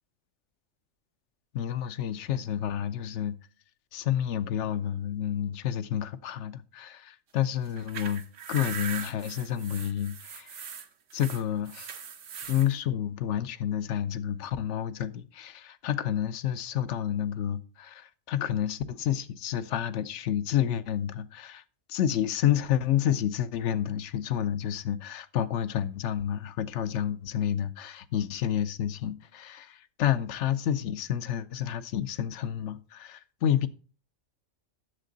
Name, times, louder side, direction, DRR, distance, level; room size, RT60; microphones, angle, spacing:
voice 1, 1.5-3.4 3.9-8.2 8.5-10.6 11.1-11.9 12.4-21.6 21.9-33.7, left 10 dB, 70° left, 0.9 m, -29 dB
sound 1, 7.7-12.7, right 7 dB, 70° right, 1.2 m, -40 dB
10.0 x 7.4 x 3.9 m
omnidirectional pair, 1.4 m